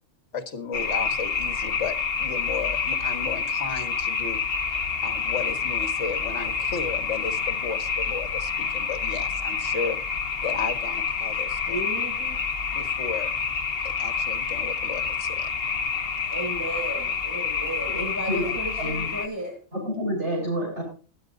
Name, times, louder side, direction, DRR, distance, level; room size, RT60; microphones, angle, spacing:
voice 1, 0.3-4.4 5.0-10.0 10.4-11.9 12.7-13.3 14.0-15.5, left 5 dB, 65° left, 8 dB, 2.0 m, -34 dB
sound 1, 0.7-19.3, left 6 dB, 50° left, 1.3 m, -28 dB
voice 2, 11.7-12.4 16.3-19.6, right 1 dB, 15° right, 0 dB, 7.2 m, -34 dB
voice 3, 17.9-18.5 18.8-19.1 19.7-20.8, equal, 65° right, -4 dB, 7.7 m, -29 dB
21.0 x 10.0 x 2.6 m, 0.37 s
omnidirectional pair, 1.3 m